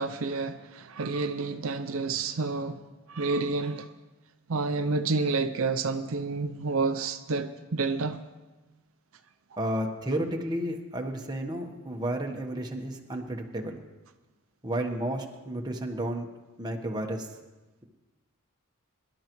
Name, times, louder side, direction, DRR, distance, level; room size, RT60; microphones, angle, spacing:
voice 1, 0.0-2.8 3.1-3.9 4.5-8.2, right 3 dB, 70° right, 0.6 m, -29 dB
voice 2, 9.6-13.8 14.6-16.3 16.6-17.3, right 1 dB, 20° right, 1.1 m, -32 dB
23.5 x 12.0 x 3.1 m
head